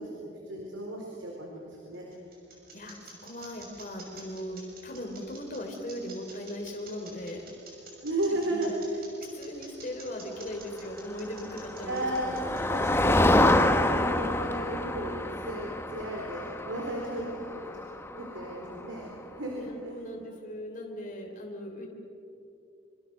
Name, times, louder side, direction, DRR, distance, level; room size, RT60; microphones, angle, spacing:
voice 1, 0.0-2.0 8.0-9.0 11.8-12.3 12.7-17.6 18.1-19.9, right 1 dB, 85° right, -1 dB, 4.2 m, -34 dB
sound 1, 1.5-13.6, right 4 dB, 50° right, 6.6 m, -49 dB
voice 2, 2.7-7.4 8.3-8.7 9.3-12.8 17.1-17.5 19.5-21.9, left 1 dB, 40° left, 1 dB, 3.3 m, -39 dB
Motor vehicle (road), 11.2-19.0, left 1 dB, 15° left, 1.0 m, -27 dB
26.5 x 26.0 x 6.5 m, 2.7 s
head